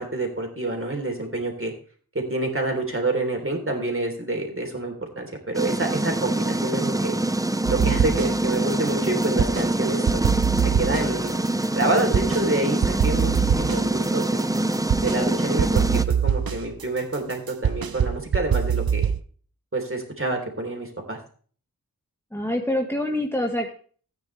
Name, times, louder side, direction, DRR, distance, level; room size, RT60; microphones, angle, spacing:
voice 1, 0.0-1.7 2.2-7.2 7.7-10.2 10.6-11.3 11.7-14.5 15.0-19.1 19.7-21.2, right 2 dB, 35° right, 2 dB, 3.6 m, -27 dB
sound 1, 5.5-16.0, right 2 dB, 10° right, 0.6 m, -25 dB
sound 2, 7.7-8.6 8.9-9.8 10.1-12.5 12.8-15.2 15.6-19.2, right 7 dB, 70° right, 0.7 m, -24 dB
voice 2, 22.3-23.7, left 1 dB, 5° left, 2 dB, 1.5 m, -25 dB
14.0 x 9.6 x 3.3 m, 0.44 s
wide cardioid pair, 40°, 37 cm